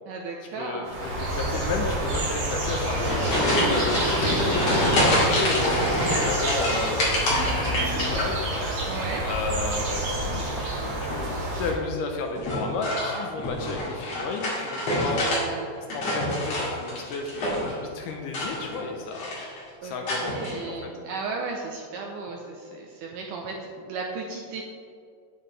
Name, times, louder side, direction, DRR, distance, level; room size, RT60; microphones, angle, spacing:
voice 1, 0.1-1.0 8.9-9.3 14.7-15.8 19.8-24.6, right 4 dB, 85° right, 0 dB, 1.9 m, -35 dB
sound 1, 0.8-11.7, right 1 dB, 65° right, 3.8 m, -29 dB
voice 2, 1.2-8.7 9.3-11.3 11.6-15.4 15.9-19.4 19.8-20.8, left 3 dB, 80° left, 2 dB, 2.0 m, -33 dB
sound 2, 2.7-8.7 9.0-9.6 11.0-11.4 12.4-15.4 15.8-17.8 18.2-18.9 19.1-19.6 20.1-20.5, left 1 dB, 45° left, 3.0 m, -26 dB
8.9 x 8.6 x 3.2 m, 2.3 s
omnidirectional pair, 4.5 m